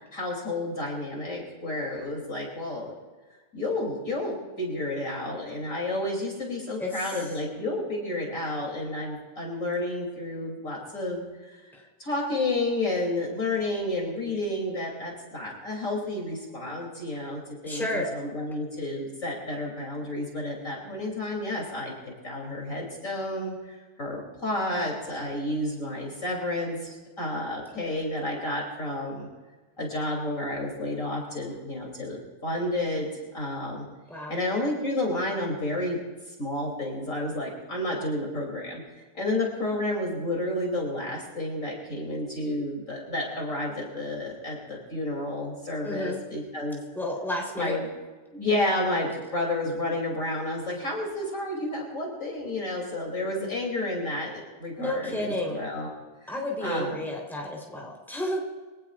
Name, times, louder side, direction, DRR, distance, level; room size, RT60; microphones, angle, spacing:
voice 1, 0.1-2.9 3.5-11.7 12.0-21.9 22.2-29.3 29.8-33.1 33.3-33.9 34.3-36.0 36.4-38.8 39.1-46.8 47.6-47.9 48.3-55.9 56.2-56.9, left 1 dB, 45° left, -2 dB, 3.7 m, -31 dB
voice 2, 17.6-18.1 34.1-34.3 45.8-46.2 46.9-47.8 54.8-55.6 56.3-58.4, left 1 dB, ahead, -1 dB, 3.9 m, -31 dB
24.5 x 18.0 x 2.5 m, 1.3 s
omnidirectional pair, 1.9 m